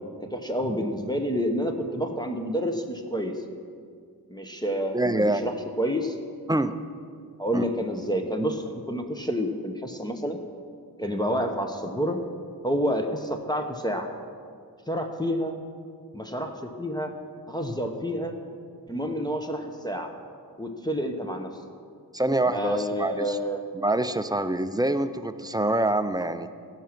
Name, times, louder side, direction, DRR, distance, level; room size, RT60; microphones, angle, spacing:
voice 1, 0.3-3.3 4.3-6.2 7.4-10.4 11.0-12.2 12.6-14.1 14.9-15.6 16.1-17.1 17.5-18.4 18.9-20.1 20.6-21.5 22.4-23.6, equal, 10° left, 4 dB, 0.7 m, -29 dB
voice 2, 4.9-5.5 6.5-6.7 7.5-7.7 22.1-23.4 23.7-26.5, right 1 dB, 10° right, 10 dB, 0.3 m, -25 dB
16.0 x 5.9 x 5.9 m, 2.2 s
wide cardioid pair, 130°, 38 cm